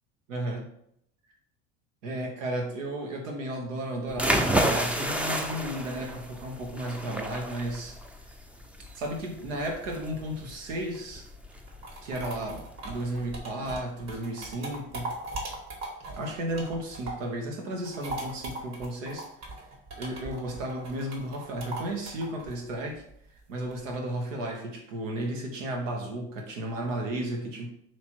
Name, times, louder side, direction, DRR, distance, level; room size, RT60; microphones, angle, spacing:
voice 1, 0.3-0.7 2.0-8.0 8.9-11.2 12.0-15.2 16.2-19.3 20.0-23.0 23.5-27.7, right 1 dB, 85° right, 1 dB, 1.1 m, -34 dB
sound 1, 4.1-13.4, right 1 dB, 5° right, 0.5 m, -31 dB
sound 2, 11.5-17.3 17.7-23.9, right 2 dB, 45° right, 1.7 m, -39 dB
3.2 x 3.0 x 4.4 m, 0.72 s
hypercardioid pair, 75°, 37 cm